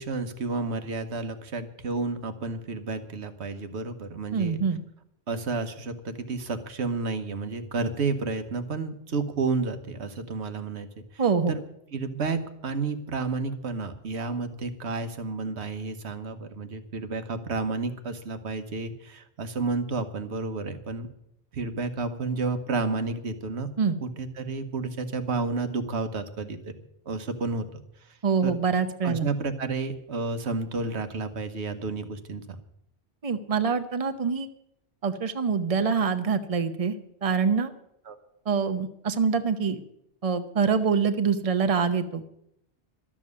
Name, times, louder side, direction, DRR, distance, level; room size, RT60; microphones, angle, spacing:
voice 1, 0.0-4.6 5.3-10.9 11.1-11.2 11.5-11.6 11.9-21.1 21.5-23.7 24.0-26.7 27.1-27.7 28.4-28.6 29.0-32.4 38.1-38.2, right 3 dB, 80° right, 9 dB, 1.4 m, -31 dB
voice 2, 4.3-4.8 11.2-11.5 23.8-24.0 28.2-29.3 33.2-34.5 35.0-36.9 37.2-37.7 38.5-39.8 40.2-42.2, right 5 dB, 35° right, 9 dB, 0.9 m, -25 dB
12.5 x 7.4 x 9.6 m, 0.77 s
omnidirectional pair, 1.1 m